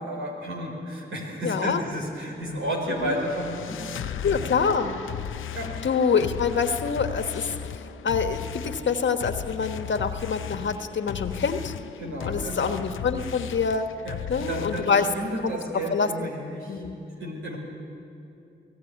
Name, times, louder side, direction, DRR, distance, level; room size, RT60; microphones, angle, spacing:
voice 1, 0.0-4.2 5.4-5.7 12.0-12.6 14.0-14.2 14.5-16.8 17.1-17.6, equal, 85° right, 0 dB, 4.9 m, -32 dB
voice 2, 1.4-1.8 3.0-3.2 4.2-5.0 5.8-7.5 8.0-11.7 12.2-13.9 14.3-15.1 15.7-16.3 16.7-17.0, left 5 dB, 70° left, 7 dB, 1.5 m, -26 dB
sound 1, 2.4-15.1, left 10 dB, 85° left, 0.6 m, -36 dB
24.0 x 16.5 x 9.5 m, 2.7 s
supercardioid pair, 40°, 20 cm